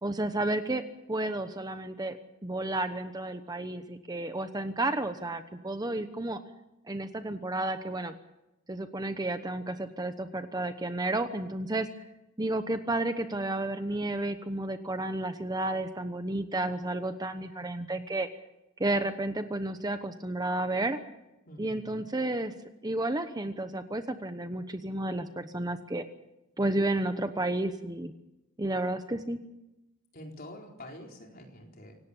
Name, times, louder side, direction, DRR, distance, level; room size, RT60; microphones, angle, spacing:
voice 1, 0.0-6.4 6.9-8.1 8.7-11.9 12.4-18.3 18.8-21.0 21.6-22.5 22.8-26.0 26.6-28.1 28.6-29.4, right 2 dB, 20° right, 9 dB, 1.0 m, -32 dB
voice 2, 21.5-22.0 30.1-32.0, left 1 dB, 45° left, 1 dB, 4.2 m, -46 dB
25.5 x 18.0 x 7.3 m, 0.93 s
head